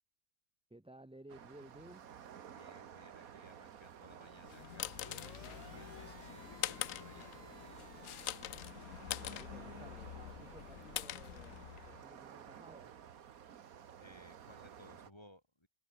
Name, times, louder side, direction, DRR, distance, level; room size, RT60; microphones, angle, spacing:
voice 1, 0.7-2.1 9.2-12.9, right 1 dB, 5° right, 0.7 m, -56 dB
sound 1, 1.3-15.1, right 8 dB, 70° right, 1.6 m, -54 dB
voice 2, 2.5-7.4 14.0-15.7, left 1 dB, 15° left, 4.2 m, -60 dB
sound 2, 4.3-12.0, left 14 dB, 70° left, 0.9 m, -44 dB
sound 3, 4.9-8.7, right 6 dB, 40° right, 0.6 m, -59 dB
omnidirectional pair, 1.6 m